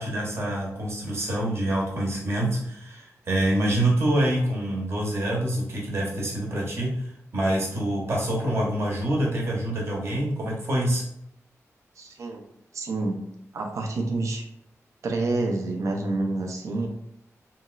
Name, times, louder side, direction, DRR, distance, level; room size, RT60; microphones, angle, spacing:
voice 1, 0.0-6.9 7.3-11.0, right 1 dB, 55° right, -2 dB, 0.9 m, -26 dB
voice 2, 12.0-12.4 12.7-13.2 13.5-14.4 15.0-16.9, right 2 dB, 70° right, 2 dB, 0.5 m, -28 dB
2.9 x 2.8 x 2.4 m, 0.73 s
wide cardioid pair, 180°, 6 cm